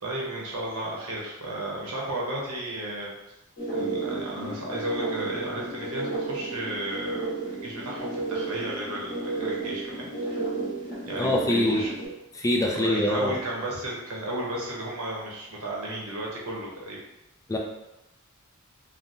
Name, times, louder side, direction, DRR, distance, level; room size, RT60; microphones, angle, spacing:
voice 1, 0.0-3.1 3.7-10.4 11.1-11.9 12.7-17.0, right 1 dB, 80° right, -4 dB, 0.9 m, -34 dB
sound 1, 3.6-12.1, right 3 dB, 40° left, 1.4 m, -32 dB
voice 2, 11.2-11.8 12.3-13.4 17.5-17.6, left 1 dB, 15° left, 0 dB, 0.3 m, -24 dB
3.3 x 2.1 x 2.6 m, 0.93 s
head